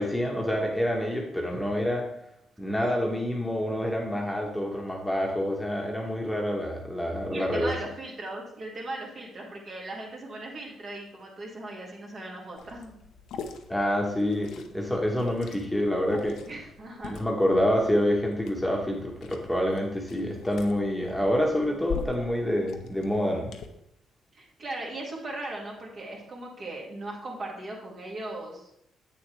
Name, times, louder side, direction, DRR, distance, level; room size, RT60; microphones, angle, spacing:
voice 1, 0.0-2.0 2.6-7.7 13.7-16.4 17.1-23.5, equal, 5° left, -1 dB, 1.4 m, -27 dB
voice 2, 7.3-12.9 16.5-17.2 24.3-28.6, right 2 dB, 50° right, -2 dB, 2.4 m, -38 dB
Liquid, 12.6-23.7, left 6 dB, 80° left, 0.8 m, -43 dB
8.0 x 6.8 x 3.4 m, 0.77 s
cardioid pair, 90°, 0 cm